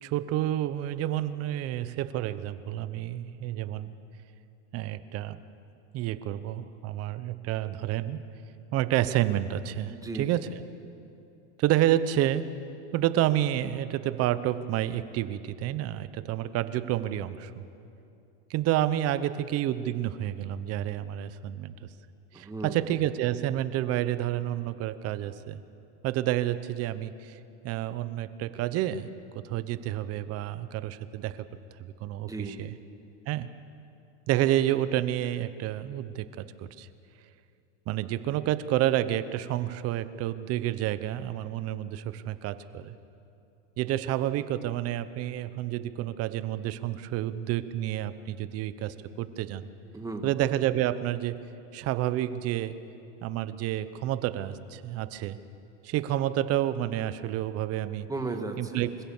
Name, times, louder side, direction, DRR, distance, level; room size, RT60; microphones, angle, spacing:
voice 1, 0.0-3.9 4.7-5.4 5.9-8.2 8.7-10.5 11.6-12.5 12.9-17.6 18.5-21.7 22.3-25.6 26.0-27.4 27.6-29.1 29.3-31.5 31.8-32.7 33.3-33.5 34.3-36.9 37.9-42.9 43.8-49.7 50.2-51.5 51.7-52.8 53.2-55.4 55.8-58.1 58.6-58.9, right 13 dB, 40° right, 14 dB, 0.9 m, -29 dB
voice 2, 9.9-10.5 22.3-22.8 32.2-32.6 49.9-50.3 58.1-59.0, right 3 dB, 10° right, 5 dB, 1.7 m, -36 dB
25.0 x 16.0 x 7.2 m, 2.7 s
supercardioid pair, 130°, 37 cm